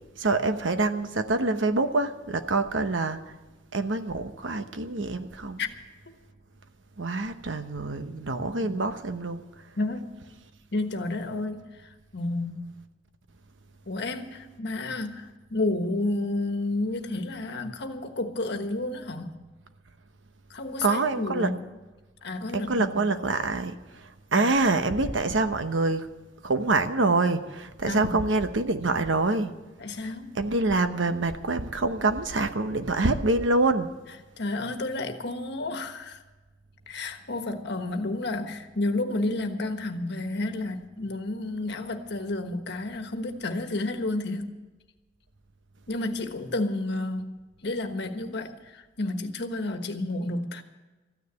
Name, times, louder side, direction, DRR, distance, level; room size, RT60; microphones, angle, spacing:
voice 1, 0.2-3.3 3.7-5.6 7.0-9.7 20.8-21.5 22.5-26.1 26.4-29.5 30.3-33.9, right 3 dB, 85° right, 1.0 m, -26 dB
voice 2, 9.8-10.1 10.7-12.7 13.9-19.3 20.5-21.6 22.2-23.0 24.3-24.5 27.8-28.1 29.8-30.4 34.4-36.2 36.9-44.5 45.9-50.6, left 2 dB, 60° left, 1.3 m, -31 dB
14.0 x 9.7 x 8.3 m
head